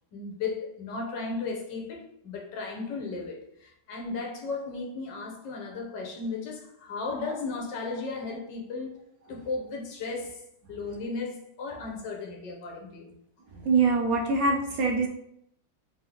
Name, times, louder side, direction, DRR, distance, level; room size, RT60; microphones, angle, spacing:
voice 1, 0.1-9.0 9.3-10.4 10.7-13.2, left 3 dB, 80° left, 1.6 m, -35 dB
voice 2, 13.5-15.1, right 4 dB, 65° right, 1.0 m, -24 dB
3.7 x 3.7 x 3.4 m
omnidirectional pair, 1.9 m